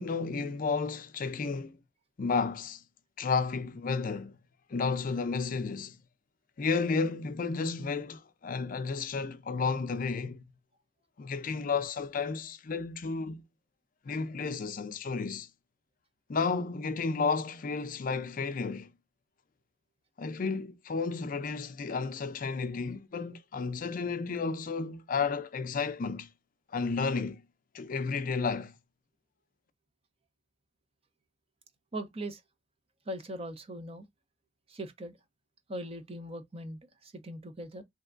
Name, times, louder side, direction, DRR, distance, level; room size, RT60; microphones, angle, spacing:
voice 1, 0.0-1.8 2.2-2.8 3.2-4.4 4.7-6.0 6.6-10.4 11.2-13.4 14.1-15.5 16.3-18.9 20.2-26.3 26.7-27.4 27.7-28.7, left 4 dB, 50° left, 0.4 m, -32 dB
voice 2, 31.9-32.4 33.1-34.1 34.7-35.1 35.7-37.8, right 1 dB, 35° right, 0.7 m, -40 dB
3.3 x 2.8 x 2.4 m
head